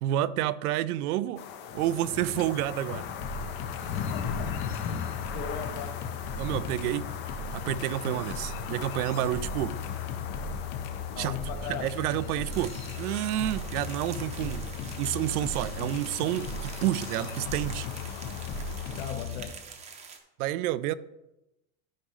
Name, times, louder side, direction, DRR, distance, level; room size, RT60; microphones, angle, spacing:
voice 1, 0.0-1.4 1.7-3.1 6.4-7.1 7.5-9.8 11.2-11.4 11.7-14.6 15.0-17.9 20.4-20.9, right 13 dB, 75° right, 0.6 m, -29 dB
sound 1, 1.4-19.1, left 7 dB, 25° left, 0.4 m, -39 dB
sound 2, 3.2-19.5, left 4 dB, 45° left, 1.1 m, -37 dB
voice 2, 3.9-4.6 5.3-6.0 11.1-11.9 19.0-19.5, left 8 dB, 65° left, 1.3 m, -37 dB
sound 3, 12.5-20.2, right 6 dB, 15° right, 0.7 m, -46 dB
12.5 x 5.2 x 3.2 m
supercardioid pair, 150°, 45 cm